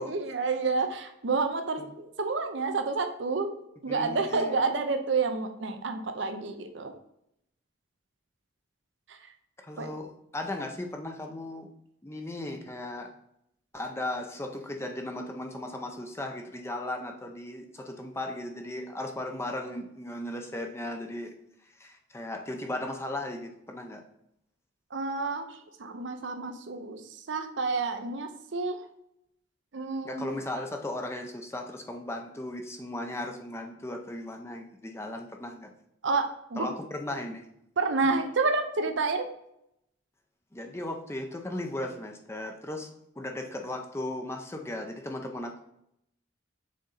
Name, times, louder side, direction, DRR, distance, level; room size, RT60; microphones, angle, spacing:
voice 1, 0.0-3.5 3.8-6.9 9.1-9.2 9.8-9.9 24.9-27.0 27.3-28.8 29.7-30.2 36.0-36.7 37.8-39.3, right 4 dB, 60° right, 6 dB, 0.7 m, -29 dB
voice 2, 3.9-4.6 9.6-11.7 12.0-13.1 13.7-21.4 21.7-24.0 30.0-35.7 36.6-37.5 40.5-45.6, left 1 dB, 15° left, 4 dB, 0.5 m, -36 dB
6.4 x 4.1 x 4.0 m, 0.77 s
head